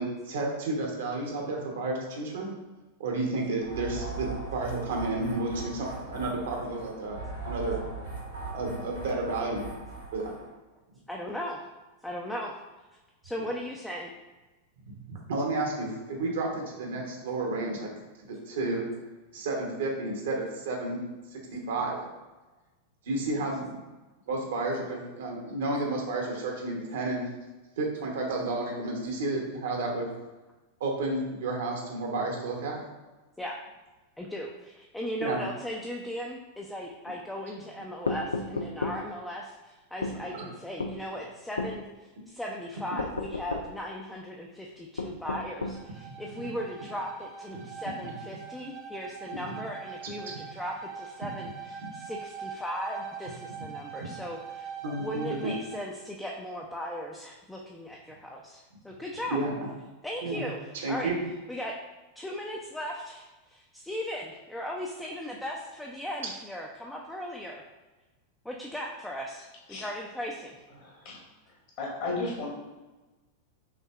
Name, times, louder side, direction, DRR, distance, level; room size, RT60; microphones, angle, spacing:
voice 1, 0.0-2.5 3.0-7.8 8.5-9.7 10.1-10.4 15.1-18.0 18.3-18.9 19.3-21.0 21.3-22.0 23.1-23.8 24.3-27.2 27.8-30.1 30.8-32.8 35.2-35.4 40.2-40.5 46.1-46.5 47.5-47.6 49.5-49.6 50.0-50.2 51.2-51.3 51.8-51.9 54.0-54.1 54.8-55.5 59.3-59.7 60.2-60.4 60.8-61.2, right 2 dB, 60° right, 0 dB, 0.9 m, -31 dB
sound 1, 3.6-10.5, right 3 dB, 75° right, 1.2 m, -39 dB
voice 2, 11.1-11.6 12.0-12.5 13.2-14.1 33.4-33.6 34.2-54.7 55.0-59.4 60.0-61.1 61.5-61.7 62.2-67.6 68.4-70.6, equal, 5° left, -2 dB, 0.4 m, -37 dB
sound 2, 38.1-39.0 40.0-40.2 40.8-41.0 41.6-41.8 43.0-43.7 45.0-45.8, left 3 dB, 75° left, 0.3 m, -32 dB
Bowed string instrument, 45.5-56.0, right 6 dB, 35° right, 0.7 m, -43 dB
voice 3, 70.8-71.2 71.8-72.5, left 3 dB, 45° left, -3 dB, 1.4 m, -33 dB
5.7 x 2.7 x 2.3 m, 1.2 s
figure-of-eight pair, 90°, 0 cm